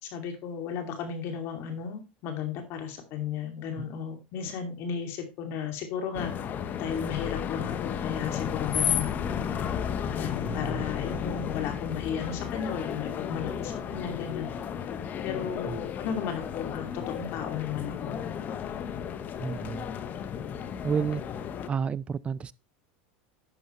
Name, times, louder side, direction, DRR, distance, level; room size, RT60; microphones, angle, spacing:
voice 1, 0.0-6.3 6.8-9.1 10.1-14.5 15.2-18.2, left 7 dB, 55° left, 2.5 m, -35 dB
sound 1, 6.1-21.7, left 8 dB, 35° left, 1.0 m, -33 dB
voice 2, 10.4-11.0 15.6-15.8 19.4-19.9 20.8-21.2 21.7-22.5, right 6 dB, 25° right, 0.5 m, -31 dB
11.0 x 6.9 x 3.2 m
supercardioid pair, 115°, 5 cm